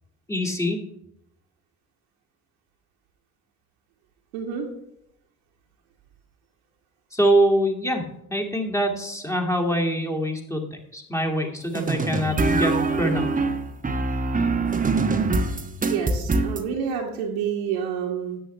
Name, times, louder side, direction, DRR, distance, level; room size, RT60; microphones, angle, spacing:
voice 1, 0.3-0.8 7.1-13.3, right 1 dB, 5° left, 3 dB, 2.3 m, -24 dB
voice 2, 4.3-4.7 15.0-15.2 15.9-18.4, right 7 dB, 70° right, -3 dB, 1.7 m, -28 dB
sound 1, 11.8-16.6, right 3 dB, 20° right, 1.1 m, -23 dB
13.5 x 9.2 x 3.3 m, 0.79 s
figure-of-eight pair, 55°, 42 cm